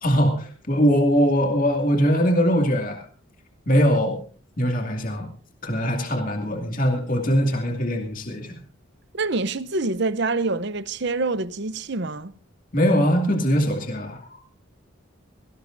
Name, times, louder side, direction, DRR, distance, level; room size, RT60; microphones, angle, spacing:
voice 1, 0.0-3.0 3.7-4.2 4.6-5.3 5.6-8.6 12.7-14.4, equal, 40° left, 2.4 m, -21 dB
voice 2, 9.1-12.3, right 3 dB, 55° right, 0.8 m, -26 dB
18.5 x 18.0 x 2.7 m
head